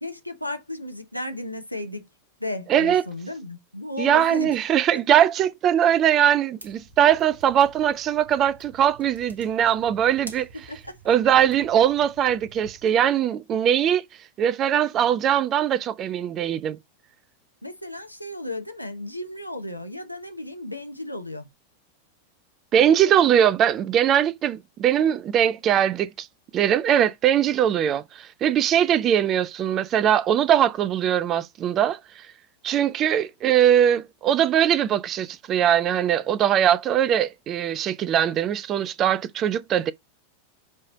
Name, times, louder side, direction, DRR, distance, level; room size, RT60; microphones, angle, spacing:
voice 1, 0.0-2.1 2.4-4.5 4.9-5.0 10.5-10.9 17.6-21.5, left 1 dB, 90° left, 0.8 m, -34 dB
voice 2, 2.7-3.0 4.0-10.5 11.1-14.0 14.4-16.8 22.7-26.3 26.5-32.2 32.6-39.9, right 10 dB, 30° right, 0.5 m, -21 dB
sound 1, 6.6-12.9, right 3 dB, 75° right, 1.2 m, -48 dB
7.5 x 3.3 x 3.9 m
figure-of-eight pair, 90°, 0 cm